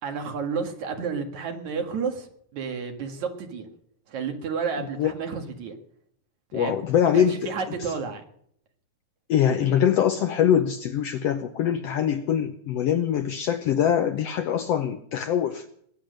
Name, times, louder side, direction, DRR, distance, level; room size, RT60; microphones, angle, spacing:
voice 1, 0.0-2.3 2.5-3.7 4.1-5.7 6.5-8.2 9.6-9.7, right 5 dB, 65° right, 4 dB, 3.2 m, -31 dB
voice 2, 4.8-5.1 6.5-7.5 9.3-15.7, left 9 dB, 75° left, 8 dB, 1.5 m, -23 dB
20.5 x 10.0 x 6.6 m, 0.67 s
omnidirectional pair, 3.6 m